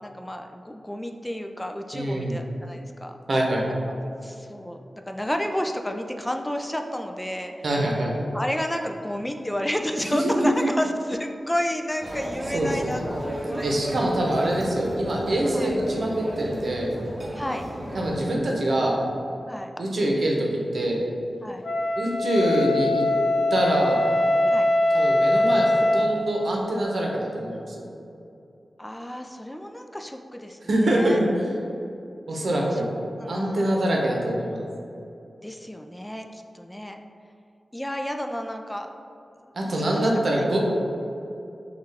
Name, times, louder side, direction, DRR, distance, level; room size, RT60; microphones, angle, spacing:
voice 1, 0.0-3.2 3.7-3.8 4.2-7.5 8.3-14.0 15.5-15.8 17.3-17.6 19.5-19.7 21.4-21.7 24.5-24.7 28.8-31.2 32.3-32.8 33.1-34.1 35.4-37.0 37.7-38.9 39.4-40.4, equal, 15° left, 4 dB, 0.3 m, -31 dB
voice 2, 1.9-2.4 3.3-3.6 7.6-8.2 10.0-10.7 12.5-13.0 13.6-16.9 17.9-19.0 19.8-20.5 20.7-21.0 22.0-23.0 23.5-24.0 24.9-27.8 30.7-31.3 32.3-32.9 33.3-34.6 39.5-40.6, right 1 dB, 70° right, -2 dB, 0.7 m, -24 dB
sound 1, 12.0-18.3, equal, 25° right, 0.8 m, -34 dB
Wind instrument woodwind instrument, 21.6-26.3, left 1 dB, 60° left, 0.6 m, -22 dB
5.4 x 2.4 x 3.3 m, 2.7 s
cardioid pair, 45°, 0 cm